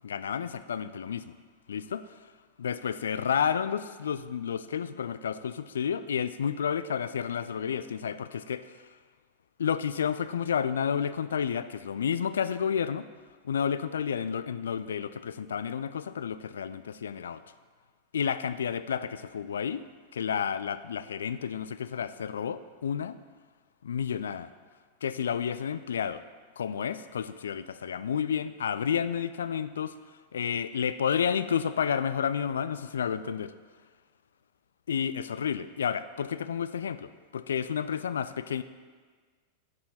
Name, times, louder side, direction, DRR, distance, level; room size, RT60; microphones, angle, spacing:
voice 1, 0.0-1.3 1.7-2.0 2.6-8.8 9.6-13.1 13.4-17.4 18.1-19.8 20.1-23.2 23.8-24.5 25.0-26.2 26.6-29.9 30.3-33.5 34.9-38.6, left 7 dB, 65° left, 13 dB, 0.3 m, -31 dB
8.4 x 7.3 x 4.2 m, 1.5 s
figure-of-eight pair, 90°, 0 cm